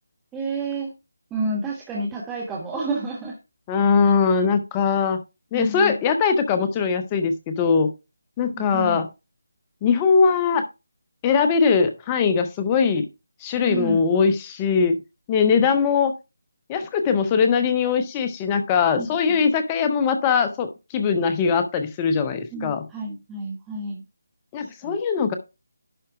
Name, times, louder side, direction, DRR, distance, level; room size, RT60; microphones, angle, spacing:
voice 1, 0.3-0.9 1.3-3.4 4.1-4.2 5.5-6.0 8.5-9.0 13.7-14.0 15.5-15.6 18.9-19.5 22.5-24.0 24.6-25.0, right 2 dB, 10° right, -2 dB, 1.3 m, -30 dB
voice 2, 3.7-5.2 5.5-7.9 8.4-9.1 9.8-10.6 11.2-13.0 13.4-15.0 15.3-16.1 16.7-22.9 24.5-25.3, left 5 dB, 20° left, 8 dB, 0.8 m, -21 dB
11.0 x 4.2 x 4.7 m, 0.27 s
figure-of-eight pair, 155°, 0 cm